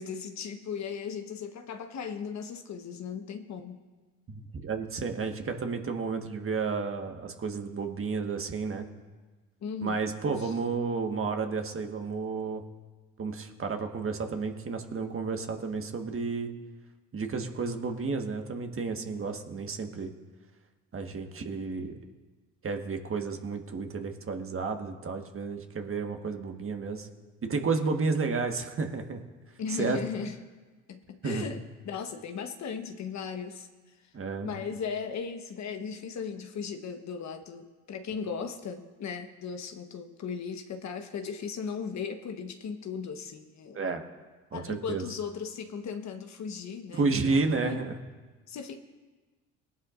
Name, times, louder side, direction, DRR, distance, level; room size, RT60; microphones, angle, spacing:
voice 1, 0.0-3.8 9.6-10.0 10.4-10.5 29.6-30.4 30.9-33.7 34.4-43.8 44.5-47.8 48.5-48.8, left 6 dB, 50° left, 6 dB, 1.3 m, -37 dB
voice 2, 4.3-8.9 9.8-12.6 13.2-16.5 17.1-20.1 20.9-22.0 22.6-27.1 27.4-29.2 29.8-30.0 31.2-31.5 34.1-34.5 43.7-44.0 44.5-45.0 46.9-48.0, right 4 dB, 40° right, 4 dB, 1.6 m, -31 dB
19.5 x 11.5 x 2.6 m, 1.3 s
hypercardioid pair, 60°, 34 cm